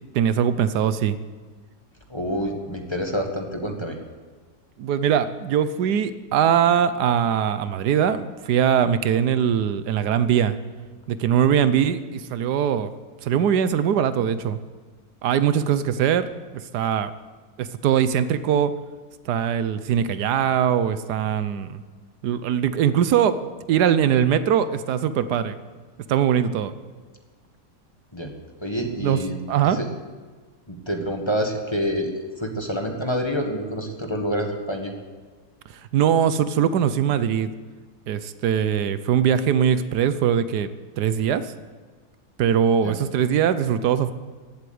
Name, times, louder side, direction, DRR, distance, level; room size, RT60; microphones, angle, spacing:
voice 1, 0.1-1.2 4.8-10.5 11.1-12.9 13.2-14.6 15.2-16.3 16.7-17.1 17.6-18.7 19.3-21.8 22.2-23.4 23.7-25.6 26.1-26.7 29.0-29.2 29.5-29.8 35.9-37.5 38.1-40.7 41.0-41.4 42.4-44.1, right 8 dB, 80° right, 13 dB, 1.3 m, -21 dB
voice 2, 2.1-4.0 28.1-28.3 28.6-29.4 29.6-29.9 30.7-32.1 32.4-34.9 42.8-42.9, equal, 15° left, 2 dB, 1.6 m, -27 dB
15.5 x 8.2 x 9.4 m, 1.4 s
omnidirectional pair, 1.7 m